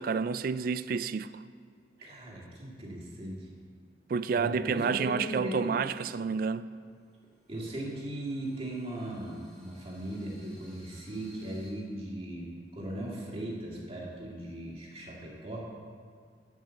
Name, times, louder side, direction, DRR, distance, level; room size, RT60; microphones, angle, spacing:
voice 1, 0.0-1.4 4.1-6.7, right 5 dB, 50° right, 0.3 m, -30 dB
voice 2, 2.0-3.5 4.4-5.7 7.5-15.7, right 1 dB, 30° right, 2.0 m, -38 dB
sound 1, 6.8-11.7, right 1 dB, 5° left, 1.9 m, -59 dB
11.5 x 5.5 x 6.9 m
head